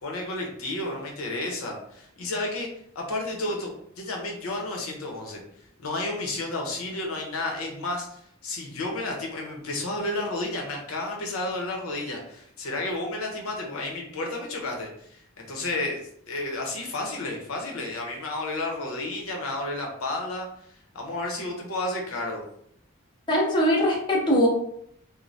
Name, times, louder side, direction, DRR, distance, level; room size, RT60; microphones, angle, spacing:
voice 1, 0.0-2.7 2.9-5.4 5.8-16.0 16.3-20.5 20.9-22.4, left 2 dB, 85° left, 0 dB, 0.7 m, -31 dB
voice 2, 23.3-24.5, equal, 20° left, -4 dB, 0.5 m, -21 dB
3.1 x 2.1 x 2.6 m, 0.68 s
head